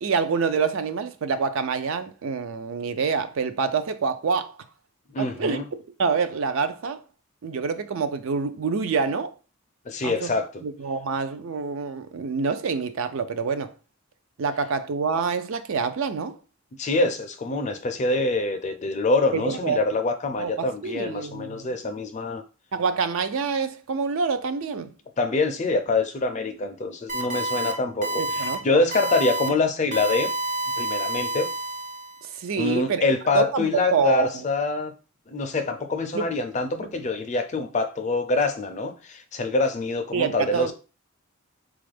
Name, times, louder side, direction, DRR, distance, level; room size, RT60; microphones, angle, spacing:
voice 1, 0.0-4.6 5.2-5.6 6.0-7.0 7.4-9.3 10.0-10.3 10.6-13.7 14.4-16.4 19.3-19.8 20.4-21.7 22.7-24.9 28.2-28.6 29.4-29.5 32.2-33.0 33.3-34.4 36.1-36.3 36.8-36.9 40.1-40.7, right 5 dB, 65° right, 0.4 m, -26 dB
voice 2, 5.1-5.6 9.9-10.6 16.8-22.4 25.2-30.3 30.8-31.5 32.6-34.9 35.3-40.7, left 3 dB, 35° left, 0.4 m, -25 dB
sound 1, 27.1-27.7 28.0-28.6 28.9-29.5 29.9-32.2, right 2 dB, 35° right, 0.8 m, -28 dB
4.1 x 2.4 x 3.2 m
head